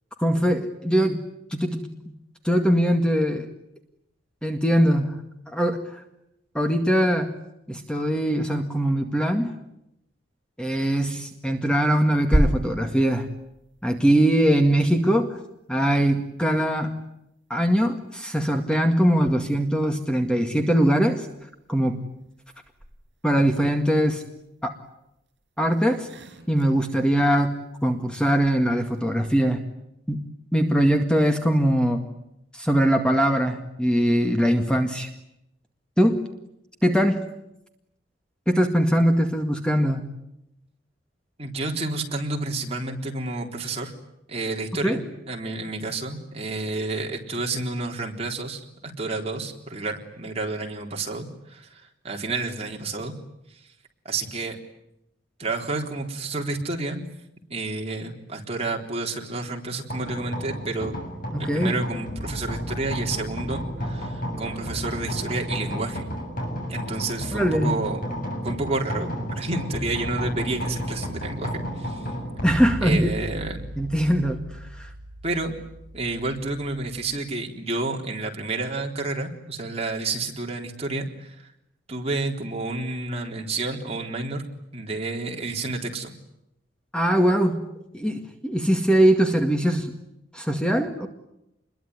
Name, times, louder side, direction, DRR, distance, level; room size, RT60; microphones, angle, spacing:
voice 1, 0.2-1.2 1.5-1.8 2.4-3.5 4.4-5.2 5.5-6.0 6.5-7.3 7.7-9.5 10.6-13.3 13.8-15.4 15.7-16.9 17.5-21.3 21.7-22.0 23.2-24.2 24.6-24.7 25.6-26.1 26.5-27.6 27.8-29.6 30.1-30.2 30.5-32.0 32.5-35.1 36.0-36.3 36.8-37.2 38.5-40.1 44.8-45.0 61.3-61.8 67.3-67.7 72.4-73.1 73.8-74.4 74.7-74.9 86.9-87.6 87.9-90.0 90.3-91.1, equal, 5° left, 5 dB, 2.0 m, -21 dB
sound 1, 11.0-11.7 12.0-15.4 18.8-20.9 21.1-29.5, equal, 70° right, 5.2 m, -33 dB
voice 2, 41.4-43.9 44.3-45.0 45.3-53.1 54.1-54.6 55.4-57.1 57.5-61.0 61.4-66.1 66.7-68.0 68.4-72.1 72.8-73.6 75.2-75.5 75.9-81.5 81.9-84.4 84.7-86.1, right 3 dB, 35° right, 2 dB, 3.9 m, -30 dB
sound 2, 59.9-77.1, equal, 50° left, 7.7 m, -33 dB
28.0 x 22.0 x 9.6 m, 0.83 s
head